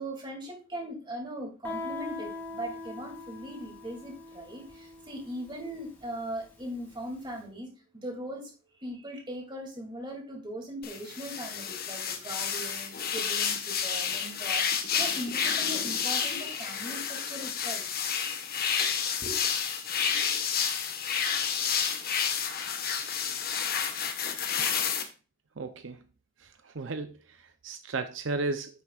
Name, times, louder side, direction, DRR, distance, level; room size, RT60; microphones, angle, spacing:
voice 1, 0.0-8.5 8.8-17.9 19.2-19.4, right 1 dB, 25° right, 2.7 m, -39 dB
Guitar, 1.6-7.1, left 3 dB, 10° left, 3.8 m, -42 dB
sound 1, 10.8-25.0, left 7 dB, 50° left, 1.3 m, -30 dB
voice 2, 25.6-26.0 26.4-28.8, right 3 dB, 75° right, 0.7 m, -35 dB
9.9 x 8.1 x 2.5 m
head